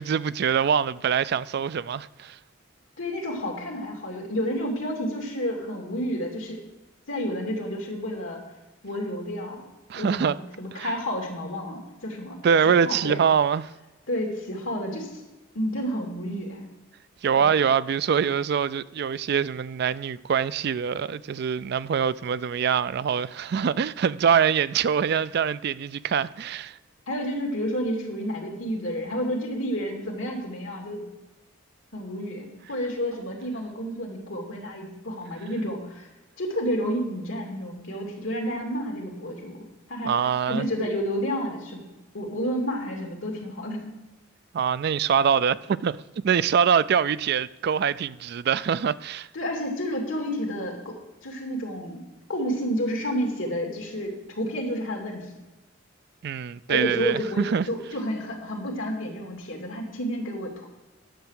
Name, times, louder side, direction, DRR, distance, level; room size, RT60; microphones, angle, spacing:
voice 1, 0.0-2.4 9.9-10.4 10.7-10.9 12.4-13.7 17.2-26.8 40.0-40.7 44.5-46.0 46.2-49.3 56.2-57.7, right 7 dB, 55° right, 0.3 m, -24 dB
voice 2, 3.0-6.6 7.1-8.4 8.8-9.6 9.9-12.4 12.7-13.2 14.1-15.2 15.5-16.7 17.4-17.5 27.1-31.0 31.9-36.1 36.4-41.8 42.1-43.8 49.3-52.0 52.3-55.3 56.7-60.7, equal, 80° left, 2.6 m, -30 dB
10.0 x 6.9 x 6.4 m
head